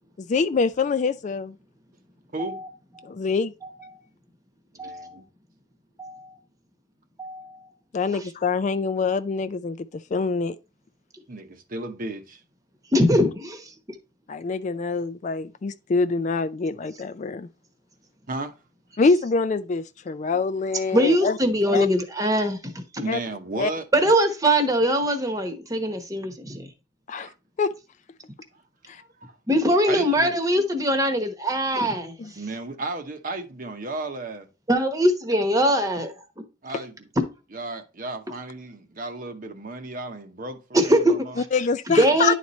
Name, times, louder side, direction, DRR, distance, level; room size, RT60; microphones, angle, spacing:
voice 1, 0.2-1.5 3.0-3.5 7.9-9.9 10.1-10.6 14.3-17.5 19.0-21.4 21.7-21.9 23.1-23.2 23.6-23.7 27.1-27.3 27.6-27.7 28.9-29.0 32.2-32.3 41.5-42.3, left 4 dB, 40° left, 0.3 m, -25 dB
voice 2, 3.6-4.0 4.8-5.2 6.0-6.4 7.2-7.7 12.9-13.7 20.9-23.0 23.9-26.7 29.5-32.1 34.7-36.2 37.2-37.3 40.7-41.4 41.9-42.3, equal, 15° right, 1.0 m, -22 dB
voice 3, 4.7-5.3 11.3-12.4 18.3-18.5 23.0-23.9 27.1-27.3 28.9-29.4 29.9-30.3 32.4-34.5 36.6-37.1 37.5-41.4, right 2 dB, 45° right, 0.9 m, -34 dB
10.5 x 4.2 x 3.1 m
head